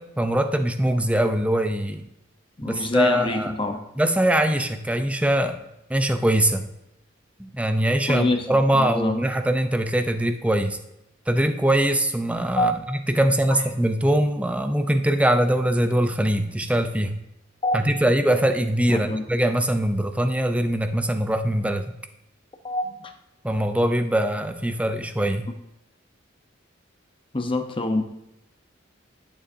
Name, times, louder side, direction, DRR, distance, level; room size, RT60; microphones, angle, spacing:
voice 1, 0.0-2.1 2.6-3.5 4.0-5.6 5.9-6.7 7.4-10.8 11.3-17.1 17.7-21.9 23.4-25.5, right 1 dB, 5° right, 7 dB, 0.6 m, -22 dB
voice 2, 2.6-3.8 8.0-8.5 8.7-9.2 12.6-12.7 17.6-17.8 18.9-19.2 22.6-23.1 27.3-28.0, left 2 dB, 25° left, 6 dB, 0.8 m, -25 dB
11.0 x 6.9 x 2.7 m, 0.87 s
head